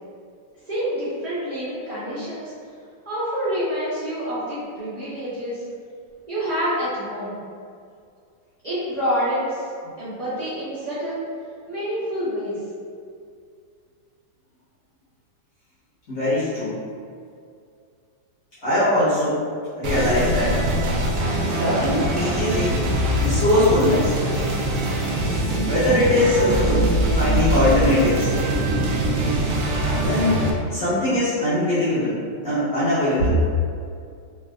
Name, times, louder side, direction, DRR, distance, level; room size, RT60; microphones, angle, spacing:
voice 1, 0.7-2.5 3.0-5.6 6.3-7.4 8.6-9.6 10.0-11.2 11.7-12.6, equal, 65° right, -14 dB, 0.4 m, -27 dB
voice 2, 16.1-16.8 18.6-19.4 19.8-20.6 21.2-21.3 21.6-22.8 23.2-24.1 25.7-26.9 27.1-28.3 29.9-30.4 30.7-32.2 32.4-33.4, left 1 dB, 55° left, -13 dB, 1.5 m, -21 dB
sound 1, 19.8-30.5, right 1 dB, 85° right, 0.7 m, -22 dB
3.3 x 3.3 x 2.4 m, 2.3 s
omnidirectional pair, 2.1 m